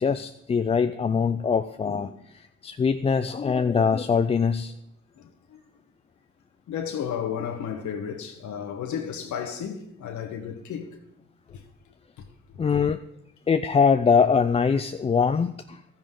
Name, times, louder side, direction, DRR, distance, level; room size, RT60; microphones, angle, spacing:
voice 1, 0.0-2.1 2.6-4.7 12.6-13.0 13.5-15.8, left 6 dB, 20° left, 0.3 m, -22 dB
voice 2, 5.2-5.6 6.7-10.9 11.5-11.6 12.2-12.3, left 8 dB, 75° left, 1.2 m, -33 dB
12.5 x 10.0 x 3.7 m
cardioid pair, 90°, 30 cm